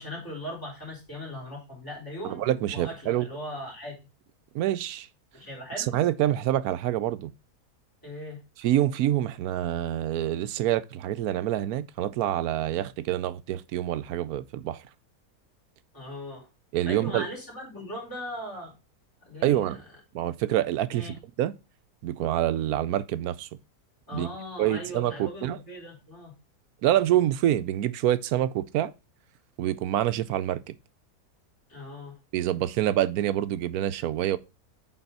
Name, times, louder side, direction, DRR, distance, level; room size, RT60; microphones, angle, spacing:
voice 1, 0.0-2.4 2.7-4.0 5.3-5.9 8.0-8.4 15.9-16.5 16.8-18.7 19.3-19.8 20.9-21.2 24.1-26.3 31.7-32.2, left 1 dB, 15° left, 4.0 m, -39 dB
voice 2, 2.2-3.3 4.5-5.1 5.9-7.3 8.6-14.8 16.7-17.3 19.4-19.8 20.1-21.5 22.0-23.5 24.1-24.3 24.6-25.6 26.8-28.9 29.6-30.7 32.3-34.4, right 12 dB, 75° right, 1.0 m, -26 dB
8.8 x 4.0 x 4.0 m
omnidirectional pair, 1.6 m